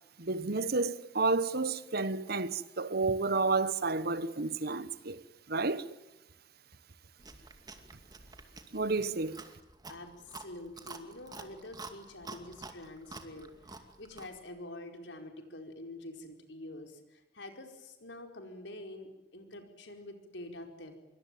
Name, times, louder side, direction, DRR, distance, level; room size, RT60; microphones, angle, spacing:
voice 1, 0.2-5.2 5.5-5.8 8.7-9.4, right 3 dB, 60° right, 1.2 m, -31 dB
Chewing mastication, 7.2-14.4, right 3 dB, 25° right, 2.4 m, -49 dB
voice 2, 9.9-20.9, left 1 dB, 85° left, 4.9 m, -47 dB
25.5 x 23.5 x 9.3 m
head